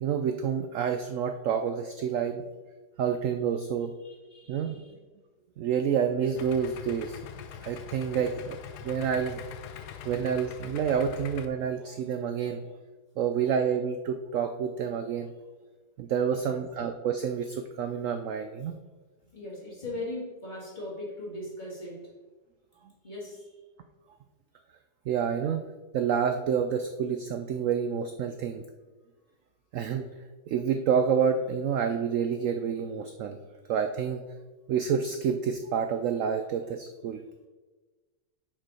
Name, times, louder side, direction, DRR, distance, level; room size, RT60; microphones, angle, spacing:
voice 1, 0.0-2.4 3.0-3.9 4.5-4.8 5.6-7.2 7.6-8.6 8.8-9.4 10.0-12.7 13.2-15.3 16.0-18.7 25.1-25.6 25.9-28.6 29.7-30.1 30.5-33.4 33.7-34.2 34.7-37.2, right 7 dB, 75° right, 7 dB, 0.7 m, -28 dB
voice 2, 4.0-4.9 8.1-8.3 9.8-9.9 16.3-16.5 19.2-22.1 23.0-23.6, left 1 dB, 25° left, -4 dB, 2.3 m, -40 dB
Idling, 6.4-11.5, left 9 dB, 75° left, 1.2 m, -43 dB
6.5 x 5.9 x 4.8 m, 1.3 s
omnidirectional pair, 1.9 m